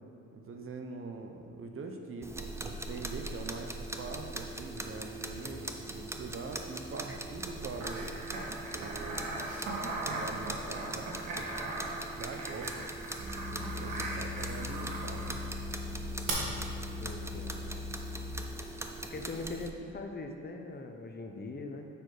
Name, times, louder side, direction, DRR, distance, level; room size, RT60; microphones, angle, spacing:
voice 1, 0.3-8.1 8.7-9.4 10.1-11.5 12.2-12.9 13.2-15.4, right 4 dB, 45° right, 4 dB, 0.9 m, -43 dB
sound 1, 2.2-19.7, right 2 dB, 10° right, 0.6 m, -41 dB
sound 2, 7.8-15.5 16.3-16.4, right 2 dB, 85° right, 1.6 m, -39 dB
sound 3, 13.2-18.5, left 4 dB, 60° right, 1.2 m, -40 dB
voice 2, 17.0-17.8 19.1-21.9, left 3 dB, 35° left, 4 dB, 0.8 m, -41 dB
6.9 x 6.0 x 4.9 m, 2.4 s
cardioid pair, 90°, 30 cm